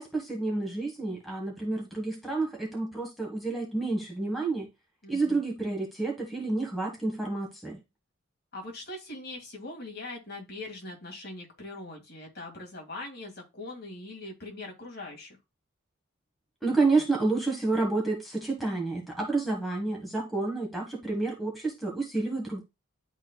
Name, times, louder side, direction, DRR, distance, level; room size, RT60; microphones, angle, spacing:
voice 1, 0.0-4.7 5.1-7.8 16.6-22.6, right 3 dB, ahead, 1.4 m, -29 dB
voice 2, 5.0-5.4 8.5-15.4, left 2 dB, 50° left, 2.0 m, -41 dB
10.5 x 4.2 x 2.3 m
head